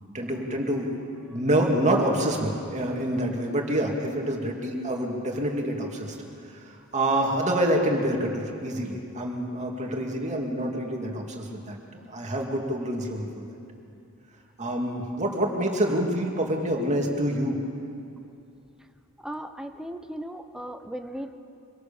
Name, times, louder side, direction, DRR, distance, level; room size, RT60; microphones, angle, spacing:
voice 1, 0.1-0.9 1.3-6.2 6.5-11.8 12.1-13.5 14.6-17.6, right 1 dB, 30° right, 1 dB, 2.6 m, -27 dB
voice 2, 19.2-21.3, right 1 dB, 5° right, 6 dB, 0.8 m, -37 dB
25.5 x 18.0 x 7.2 m, 2.6 s
head